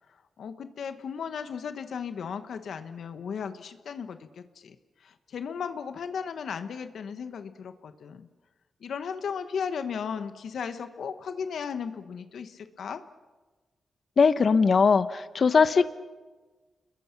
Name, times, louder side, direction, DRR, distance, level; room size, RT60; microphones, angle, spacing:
voice 1, 0.1-8.3 8.8-13.0, left 6 dB, 75° left, 9 dB, 1.2 m, -36 dB
voice 2, 14.2-15.9, left 5 dB, 50° left, 12 dB, 0.8 m, -20 dB
29.0 x 22.0 x 6.0 m, 1.3 s
wide cardioid pair, 125°, 0 cm